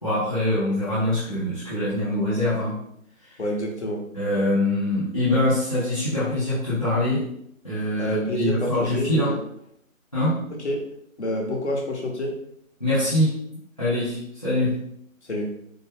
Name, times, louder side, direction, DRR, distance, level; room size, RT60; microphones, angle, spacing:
voice 1, 0.0-2.8 3.2-3.4 4.1-7.3 7.6-9.4 10.1-10.4 12.8-13.4 13.8-14.9, left 1 dB, 25° left, -11 dB, 0.7 m, -24 dB
voice 2, 3.4-4.0 8.0-9.4 10.6-10.8 11.2-12.4 15.2-15.5, equal, 55° left, 0 dB, 1.0 m, -28 dB
4.4 x 2.1 x 3.5 m, 0.72 s
figure-of-eight pair, 165°, 41 cm